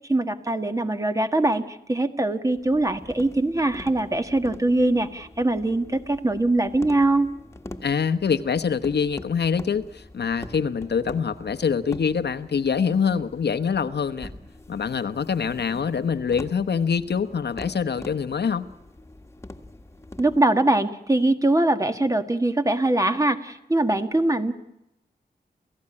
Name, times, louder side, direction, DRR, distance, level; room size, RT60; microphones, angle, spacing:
voice 1, 0.1-7.3 20.2-24.5, right 2 dB, 20° right, 7 dB, 1.6 m, -22 dB
sound 1, 2.5-20.4, left 1 dB, 15° left, 1.8 m, -43 dB
voice 2, 7.8-14.3 14.7-18.7, left 6 dB, 85° left, 10 dB, 1.1 m, -25 dB
29.0 x 16.0 x 9.8 m, 0.87 s
wide cardioid pair, 110°, 17 cm